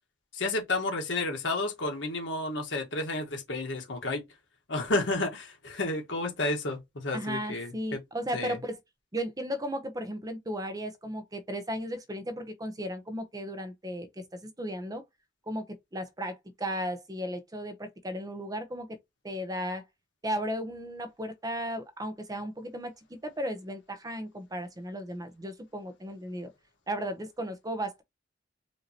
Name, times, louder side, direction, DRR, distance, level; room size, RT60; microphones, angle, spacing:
voice 1, 0.3-4.2 4.7-8.0 8.3-8.6, left 2 dB, 80° left, 1.5 m, -31 dB
voice 2, 7.1-8.8 9.1-14.1 14.3-15.0 15.5-15.7 15.9-18.9 19.2-19.8 20.2-26.5 26.9-28.0, equal, 20° right, 0.7 m, -35 dB
5.0 x 2.8 x 2.8 m
head